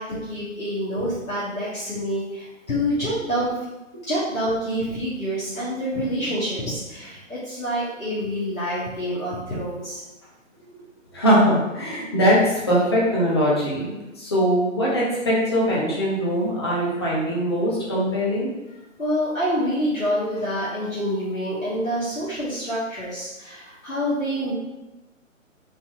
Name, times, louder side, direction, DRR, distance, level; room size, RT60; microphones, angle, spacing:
voice 1, 0.0-3.5 4.1-10.0 19.0-24.5, equal, 85° left, -10 dB, 1.3 m, -27 dB
voice 2, 5.9-6.3 11.1-18.5, equal, 20° left, -6 dB, 0.5 m, -21 dB
3.9 x 2.8 x 2.4 m, 1.0 s
figure-of-eight pair, 135°, 40 cm